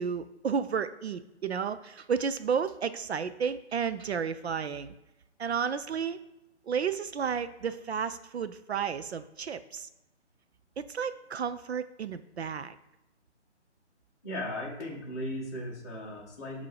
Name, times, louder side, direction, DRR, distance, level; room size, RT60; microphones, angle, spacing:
voice 1, 0.0-4.9 5.4-6.2 6.7-9.9 10.8-12.8, right 6 dB, 65° right, 12 dB, 0.5 m, -32 dB
voice 2, 14.2-16.7, left 1 dB, 15° left, -5 dB, 1.1 m, -37 dB
7.6 x 2.8 x 4.7 m, 0.93 s
hypercardioid pair, 165°, 35 cm